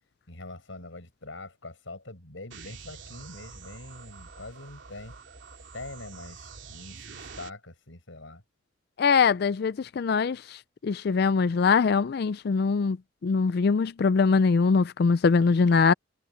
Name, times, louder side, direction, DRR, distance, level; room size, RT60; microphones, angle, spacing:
voice 1, 0.3-5.2 5.7-8.4, left 2 dB, 80° left, 5.4 m, -43 dB
sound 1, 2.5-7.5, right 4 dB, 65° right, 3.0 m, -46 dB
voice 2, 9.0-13.0 13.2-15.9, left 5 dB, 55° left, 0.4 m, -22 dB
head